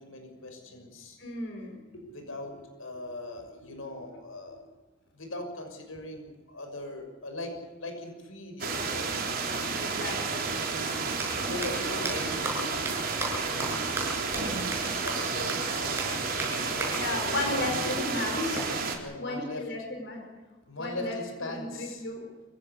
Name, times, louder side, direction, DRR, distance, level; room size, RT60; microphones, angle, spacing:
voice 1, 0.0-1.2 1.9-4.7 5.1-7.5 7.8-9.1 9.8-10.1 10.4-12.9 13.5-14.7 15.0-17.6 19.0-19.7 20.7-22.1, left 1 dB, 90° left, 4 dB, 6.5 m, -40 dB
voice 2, 1.2-1.8 9.8-10.5 16.9-18.9 19.1-20.2 20.8-21.2 21.6-22.3, left 2 dB, 55° left, 1 dB, 5.2 m, -34 dB
sound 1, 8.6-19.0, right 4 dB, 45° right, 3.9 m, -31 dB
sound 2, 11.2-11.3 11.6-11.7 12.0-12.1 12.4-12.5 12.9-13.0 13.2-13.3 13.6-13.7 14.0-14.1 14.3-14.4 14.7-14.8 15.1-15.2 15.5-15.6 16.0-16.1 16.4-16.5 16.8-16.9 18.5-19.6, right 2 dB, 10° right, 6.4 m, -34 dB
25.5 x 16.5 x 8.3 m, 1.2 s
head